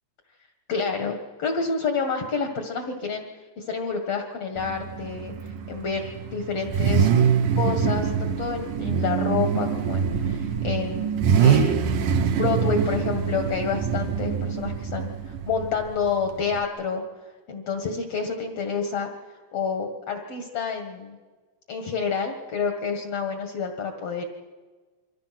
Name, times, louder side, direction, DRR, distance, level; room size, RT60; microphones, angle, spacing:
voice 1, 0.7-3.3 3.6-7.1 7.6-12.0 12.4-17.0 17.5-19.1 19.5-21.2 21.7-24.2, left 5 dB, 55° left, 4 dB, 1.8 m, -29 dB
Car / Idling / Accelerating revving vroom, 4.6-16.7, right 7 dB, 75° right, 1.8 m, -24 dB
28.5 x 24.5 x 6.0 m, 1.4 s
omnidirectional pair, 5.2 m